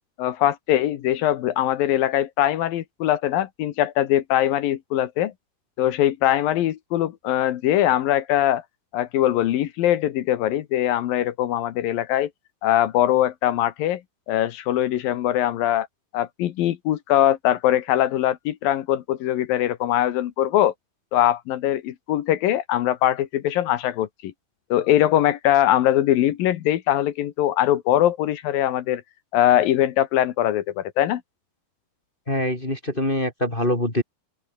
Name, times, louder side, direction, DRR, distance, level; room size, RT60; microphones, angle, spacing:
voice 1, 0.2-5.3 5.8-8.6 8.9-12.3 12.6-14.0 14.3-15.9 16.1-20.7 21.1-24.3 24.7-29.0 29.3-31.2, left 12 dB, 70° left, 2.8 m, -22 dB
voice 2, 32.3-34.0, left 1 dB, 15° left, 2.9 m, -24 dB
omnidirectional pair, 4.4 m